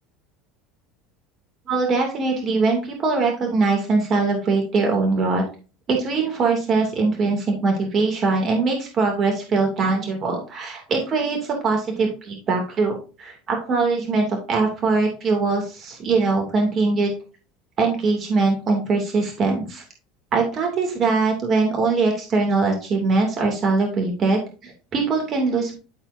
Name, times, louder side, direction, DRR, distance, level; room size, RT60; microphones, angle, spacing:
voice 1, 1.7-5.4 5.9-17.1 17.8-19.8 20.3-25.7, right 4 dB, 40° right, 1 dB, 2.6 m, -22 dB
13.5 x 4.6 x 2.7 m, 0.34 s
supercardioid pair, 95°, 0 cm